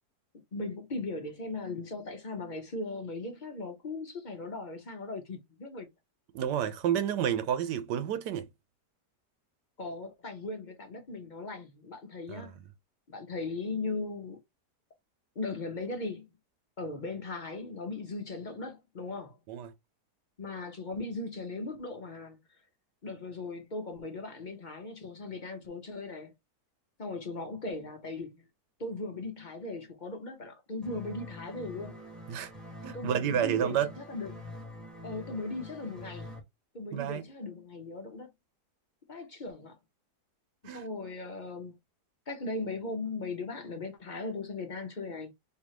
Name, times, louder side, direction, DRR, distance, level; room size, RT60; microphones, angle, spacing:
voice 1, 0.3-5.9 9.8-12.5 13.1-14.4 15.4-16.3 16.8-19.4 20.4-22.6 23.0-26.3 27.0-28.4 28.8-31.9 32.9-34.4 35.0-36.3 36.7-38.3 39.1-39.8 40.6-41.8 42.3-45.3, left 3 dB, 40° left, 0.7 m, -38 dB
voice 2, 6.3-8.5 12.3-12.5 19.5-19.7 32.3-32.5 32.8-33.9 36.9-37.2 40.6-40.8, right 9 dB, 90° right, 1.3 m, -30 dB
sound 1, 30.8-36.4, left 1 dB, ahead, 1.2 m, -45 dB
4.4 x 2.8 x 2.9 m
omnidirectional pair, 1.8 m